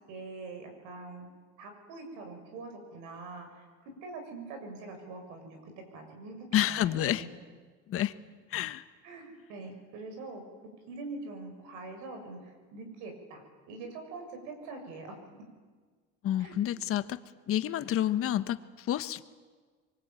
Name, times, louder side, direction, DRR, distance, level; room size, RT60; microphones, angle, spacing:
voice 1, 0.1-1.3 1.6-7.3 9.0-10.4 10.9-13.4 13.7-15.1 16.4-16.6, right 3 dB, 85° right, 5 dB, 7.0 m, -44 dB
voice 2, 6.5-7.2 7.9-8.1 8.5-8.8 16.2-17.2 17.5-19.3, left 12 dB, 50° left, 11 dB, 1.3 m, -29 dB
26.5 x 23.5 x 9.1 m, 1.5 s
cardioid pair, 130°, 29 cm